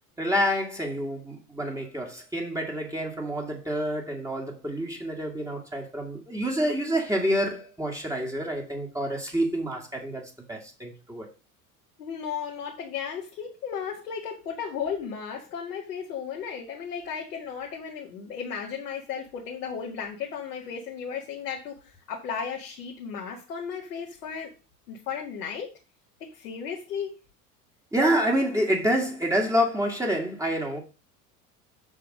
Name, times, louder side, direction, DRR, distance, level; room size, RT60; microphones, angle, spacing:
voice 1, 0.2-11.3 27.9-30.8, equal, 5° right, 2.0 m, -28 dB
voice 2, 12.0-24.5 24.9-25.7 26.2-27.2, left 7 dB, 70° left, 1.9 m, -35 dB
7.2 x 5.7 x 5.0 m
figure-of-eight pair, 70°, 47 cm